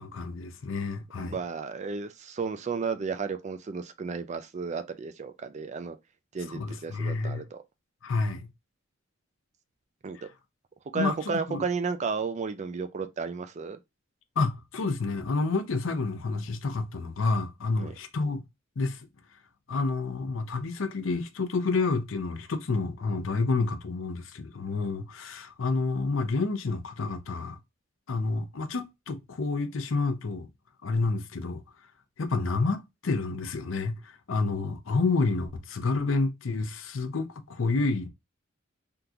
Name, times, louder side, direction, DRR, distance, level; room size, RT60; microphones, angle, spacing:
voice 1, 0.0-1.4 6.5-7.4 8.0-8.5 10.9-11.6 14.4-18.4 18.8-19.0 19.7-27.6 28.1-30.5 30.8-31.6 32.2-38.1, left 3 dB, 70° left, 0.6 m, -29 dB
voice 2, 1.2-6.0 6.3-7.6 10.0-10.3 10.9-13.8 17.8-17.9, right 5 dB, 35° right, 0.4 m, -33 dB
3.6 x 2.8 x 2.4 m
head